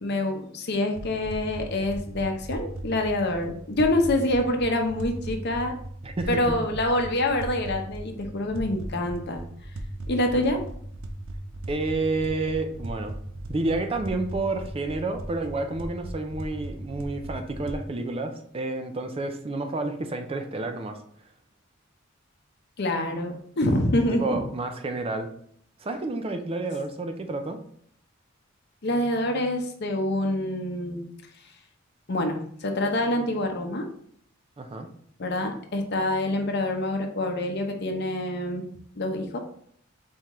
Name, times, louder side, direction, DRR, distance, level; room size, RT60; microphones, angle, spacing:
voice 1, 0.0-5.7 6.3-9.4 10.1-10.6 22.8-24.3 28.8-31.0 32.1-33.9 35.2-38.7 39.0-39.4, left 1 dB, 55° left, 4 dB, 0.7 m, -26 dB
sound 1, 0.9-17.8, right 1 dB, 85° right, 0.6 m, -38 dB
voice 2, 6.0-6.5 11.7-13.2 13.5-21.0 24.0-25.3 25.8-27.6 34.6-34.9, right 2 dB, 30° right, 6 dB, 0.4 m, -30 dB
4.3 x 3.7 x 3.0 m, 0.63 s
head